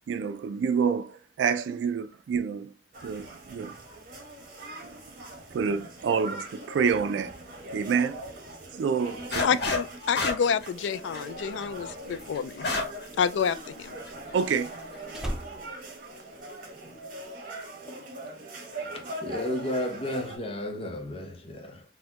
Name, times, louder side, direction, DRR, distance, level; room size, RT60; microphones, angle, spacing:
voice 1, 0.1-2.7 3.0-3.8 4.8-5.0 5.5-7.3 7.7-8.3 8.8-9.5 14.3-14.7, right 6 dB, 90° right, 0.3 m, -28 dB
sound 1, 2.9-20.4, right 1 dB, 50° right, 1.1 m, -42 dB
sound 2, 9.3-9.9 10.1-13.0 13.4-13.5 14.1-14.4, left 3 dB, 65° left, 1.0 m, -29 dB
voice 2, 9.4-12.7 13.2-14.0, left 7 dB, 85° left, 0.3 m, -28 dB
Slam, 12.8-16.9 17.2-17.6, equal, 5° right, 0.3 m, -40 dB
voice 3, 19.2-21.8, left 1 dB, 30° left, 0.7 m, -32 dB
4.1 x 2.2 x 2.8 m
head